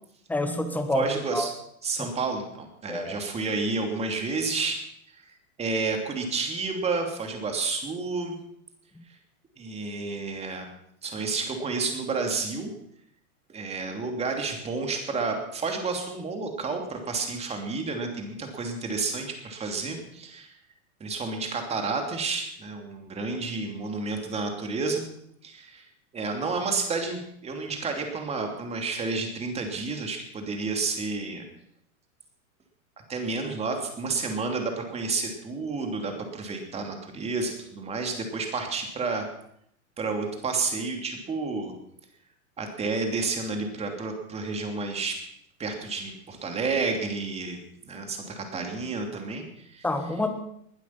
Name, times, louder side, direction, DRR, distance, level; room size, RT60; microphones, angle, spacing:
voice 1, 0.3-1.5 2.0-2.1 2.9-3.2 8.9-9.0 49.8-50.3, left 2 dB, 5° left, 7 dB, 1.3 m, -28 dB
voice 2, 0.9-1.5 1.8-4.8 5.1-5.2 5.6-8.4 9.6-10.7 11.0-12.7 13.5-20.5 21.0-25.1 25.4-25.8 26.1-31.4 33.1-39.3 40.0-41.7 42.6-45.2 45.6-47.6 47.8-49.9, right 4 dB, 15° right, 4 dB, 2.9 m, -30 dB
21.0 x 12.0 x 5.9 m, 0.71 s
hypercardioid pair, 150°, 43 cm